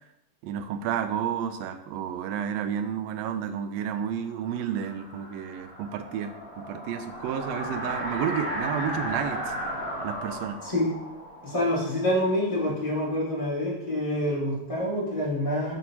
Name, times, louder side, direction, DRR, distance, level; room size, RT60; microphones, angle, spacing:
voice 1, 0.4-9.5 10.0-10.6, right 8 dB, 80° right, 8 dB, 1.5 m, -31 dB
sound 1, 4.2-12.9, equal, 30° right, 2.8 m, -35 dB
voice 2, 10.6-10.9 11.4-15.7, left 1 dB, 15° left, -8 dB, 1.3 m, -27 dB
6.3 x 5.4 x 2.9 m, 0.86 s
omnidirectional pair, 3.4 m